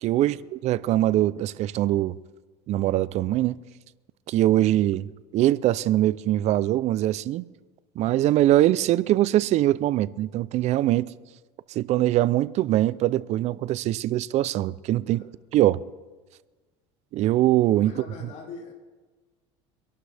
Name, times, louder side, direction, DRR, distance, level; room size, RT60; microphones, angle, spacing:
voice 1, 0.0-2.2 2.7-3.6 4.3-7.5 8.0-11.1 11.7-15.2 15.5-15.8 17.1-18.0, right 14 dB, 50° right, 0.5 m, -22 dB
voice 2, 17.8-18.7, left 4 dB, 50° left, 3.3 m, -43 dB
25.0 x 11.5 x 3.5 m
supercardioid pair, 105°, 15 cm